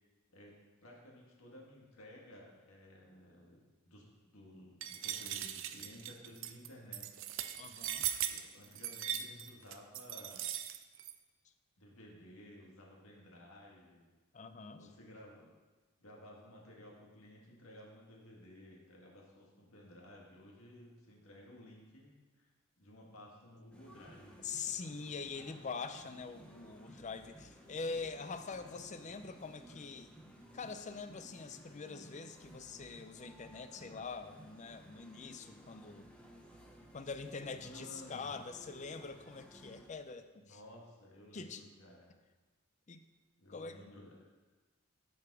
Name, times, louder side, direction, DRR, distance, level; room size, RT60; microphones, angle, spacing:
voice 1, 0.3-3.6 3.9-7.2 8.2-10.5 11.8-14.1 14.7-15.6 16.0-22.5 22.8-24.4 37.6-38.4 40.4-42.2 43.4-44.1, equal, 80° left, -2 dB, 1.8 m, -55 dB
sound 1, 4.8-11.1, right 11 dB, 65° right, 0.5 m, -39 dB
voice 2, 7.6-8.1 14.3-14.9 24.4-30.2 30.5-36.1 36.9-40.6 41.3-41.6 42.9-43.0 43.5-43.8, left 4 dB, 35° left, 10 dB, 0.5 m, -44 dB
sound 2, 23.7-39.9, equal, 5° left, 0.9 m, -57 dB
12.5 x 4.9 x 4.8 m, 1.3 s
head